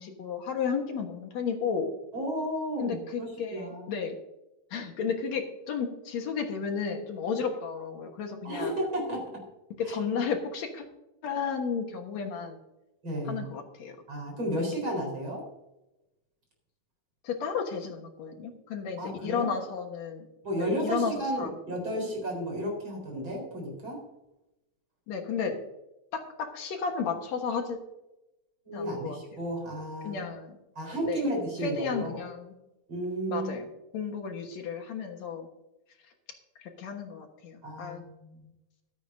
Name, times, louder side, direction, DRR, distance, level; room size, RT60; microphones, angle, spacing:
voice 1, 0.0-1.9 2.8-4.2 4.7-8.7 9.8-10.9 11.2-12.6 13.3-14.0 14.5-14.7 17.2-20.3 20.5-22.1 25.1-25.5 26.1-27.8 28.7-29.2 30.0-30.6 31.0-31.3 31.6-32.5 33.3-33.7 33.9-35.5 36.6-38.0, left 6 dB, 70° left, 4 dB, 2.5 m, -33 dB
voice 2, 2.1-3.8 8.4-9.4 13.0-13.4 14.1-15.4 19.0-19.5 20.4-24.0 28.7-30.3 30.7-32.2 32.9-33.5 37.6-38.5, right 1 dB, 40° right, 0 dB, 5.0 m, -33 dB
15.0 x 13.0 x 2.7 m, 0.92 s
omnidirectional pair, 3.3 m